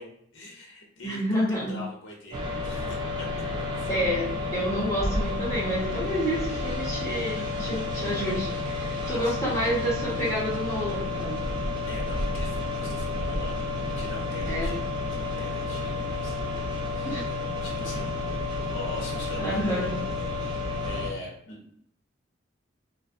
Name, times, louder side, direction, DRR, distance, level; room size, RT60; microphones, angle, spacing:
voice 1, 0.0-3.4 3.7-3.9 6.3-6.5 7.4-7.6 8.9-9.3 11.9-13.7 14.0-14.8 15.1-17.2 17.5-18.1 18.7-19.9 20.5-21.6, left 2 dB, 75° left, -2 dB, 0.6 m, -42 dB
voice 2, 1.0-1.8 3.9-11.4 14.5-14.8 17.0-17.3 19.4-19.9, equal, 15° left, -7 dB, 0.7 m, -29 dB
sound 1, 2.3-21.1, left 2 dB, 20° right, 0.4 m, -31 dB
2.5 x 2.0 x 2.4 m, 0.68 s
head